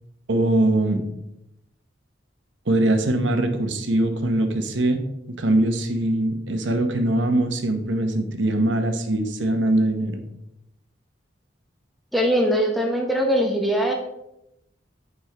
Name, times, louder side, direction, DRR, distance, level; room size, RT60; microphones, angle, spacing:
voice 1, 0.3-1.0 2.7-5.0 5.3-10.2, right 1 dB, 80° right, 6 dB, 1.0 m, -22 dB
voice 2, 12.1-13.9, equal, ahead, 0 dB, 0.8 m, -21 dB
9.1 x 5.3 x 3.4 m, 0.85 s
head